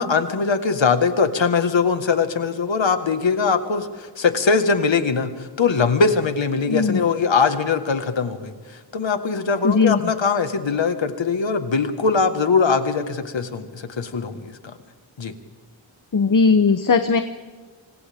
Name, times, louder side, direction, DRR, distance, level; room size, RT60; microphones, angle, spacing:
voice 1, 0.0-8.5 8.9-14.6 15.2-15.3, left 5 dB, 75° left, 8 dB, 1.7 m, -21 dB
voice 2, 6.7-7.0 9.6-10.0 16.1-17.2, left 4 dB, 45° left, 9 dB, 0.9 m, -18 dB
27.5 x 25.5 x 3.6 m, 1.5 s
wide cardioid pair, 100°, 46 cm